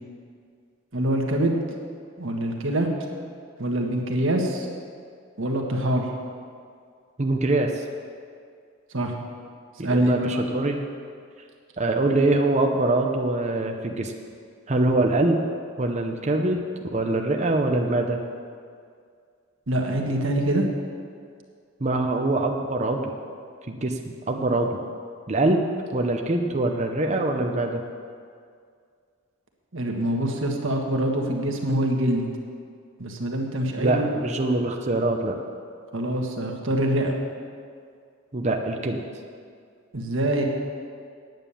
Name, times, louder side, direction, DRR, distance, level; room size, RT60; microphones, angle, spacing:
voice 1, 0.9-1.6 2.2-2.9 3.6-4.7 5.4-6.1 8.9-9.1 9.8-10.4 19.7-20.6 29.7-32.2 33.0-34.1 35.9-37.1 39.9-40.4, right 1 dB, 60° right, 1 dB, 1.5 m, -24 dB
voice 2, 7.2-7.8 9.8-10.8 11.8-14.1 14.7-15.4 15.8-16.6 16.9-18.2 21.8-23.1 23.7-24.0 24.3-24.8 25.3-25.6 25.9-27.8 33.8-35.3 38.3-39.0, right 2 dB, 30° right, 3 dB, 0.7 m, -23 dB
9.4 x 9.2 x 7.0 m, 2.2 s
head